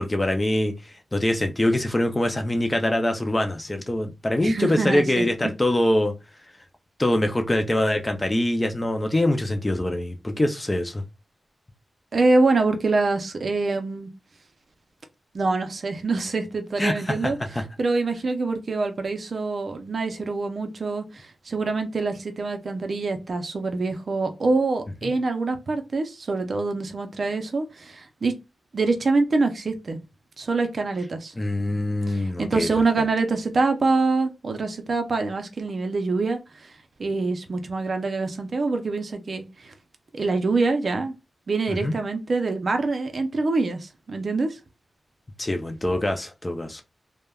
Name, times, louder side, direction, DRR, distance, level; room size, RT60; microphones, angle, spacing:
voice 1, 0.0-6.1 7.0-11.0 16.8-17.6 25.0-25.1 31.4-32.7 41.7-41.9 45.4-46.8, left 1 dB, 15° left, 0.3 m, -24 dB
voice 2, 4.4-5.5 12.1-14.1 15.3-17.4 17.8-28.4 28.7-30.0 30.4-31.3 32.1-36.7 37.0-39.7 40.1-41.1 41.5-44.6, right 3 dB, 50° right, 0.4 m, -25 dB
3.3 x 2.1 x 2.2 m
wide cardioid pair, 170°, 0 cm